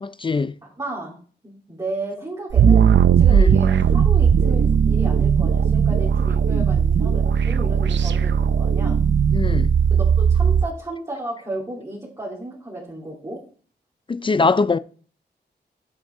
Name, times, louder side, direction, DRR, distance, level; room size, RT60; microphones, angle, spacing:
voice 1, 0.0-0.5 3.3-3.5 9.3-9.7 14.1-14.8, left 4 dB, 30° left, 0.4 m, -21 dB
voice 2, 0.8-1.2 1.4-9.0 9.9-13.4, right 2 dB, 20° right, 3.0 m, -33 dB
sound 1, 2.5-10.7, right 7 dB, 85° right, 0.6 m, -17 dB
8.9 x 8.7 x 3.7 m
wide cardioid pair, 120°, 18 cm